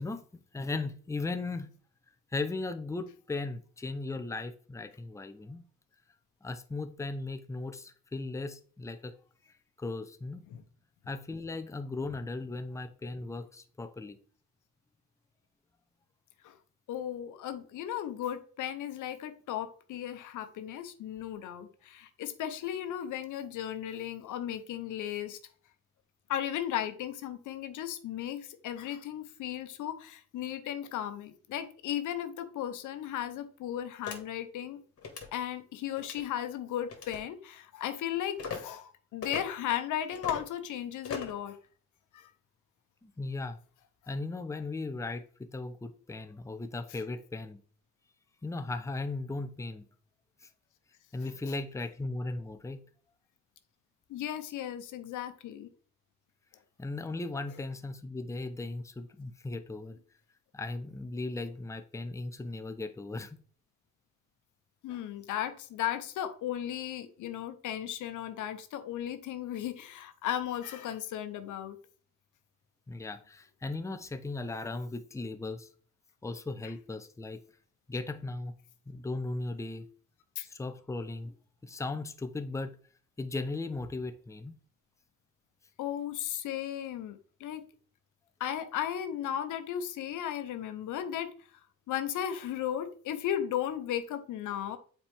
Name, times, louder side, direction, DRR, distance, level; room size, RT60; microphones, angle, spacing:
voice 1, 0.0-1.7 2.3-5.7 6.4-9.1 9.4-10.5 11.1-14.2 43.0-43.6 44.1-47.6 48.4-49.9 50.4-50.5 51.1-52.8 56.8-60.0 60.5-63.4 72.9-75.7 76.2-77.4 77.9-78.5 78.9-79.9 80.4-81.3 81.6-82.8 83.2-84.5, left 3 dB, 10° left, 0.6 m, -37 dB
voice 2, 16.9-25.4 26.3-34.8 35.3-41.6 42.1-42.3 54.1-55.7 64.8-71.8 80.4-80.5 85.8-87.6 88.4-91.3 91.9-94.8, left 10 dB, 80° left, 0.9 m, -35 dB
sound 1, 34.0-34.2 35.0-35.3 36.0-36.2 36.9-37.2 38.4-38.6 39.2-39.4 40.1-40.5 41.0-41.4, left 5 dB, 50° left, 2.0 m, -38 dB
7.2 x 4.5 x 3.5 m
cardioid pair, 90°, 30 cm